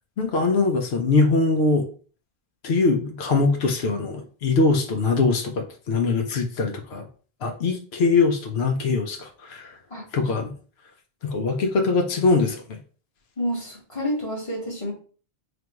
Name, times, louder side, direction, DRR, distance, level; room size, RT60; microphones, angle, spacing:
voice 1, 0.2-1.9 2.6-7.1 7.4-9.7 10.1-10.5 11.2-12.8, left 3 dB, 85° left, 3 dB, 0.9 m, -22 dB
voice 2, 9.9-10.3 13.4-14.9, equal, 30° left, -3 dB, 1.6 m, -29 dB
3.4 x 2.5 x 4.4 m, 0.40 s
omnidirectional pair, 1.0 m